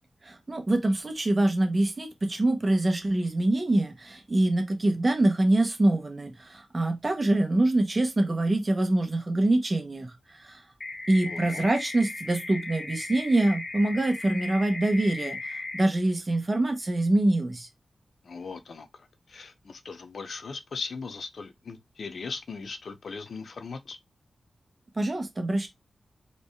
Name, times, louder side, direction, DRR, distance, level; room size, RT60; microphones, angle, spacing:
voice 1, 0.2-10.6 11.1-17.7 24.9-25.7, right 2 dB, 30° right, 1.4 m, -25 dB
sound 1, 10.8-15.8, left 3 dB, 35° left, 1.0 m, -37 dB
voice 2, 11.3-11.7 18.2-18.9 19.3-24.0, left 4 dB, 70° left, 0.7 m, -38 dB
4.1 x 3.3 x 3.6 m
wide cardioid pair, 80°, 0 cm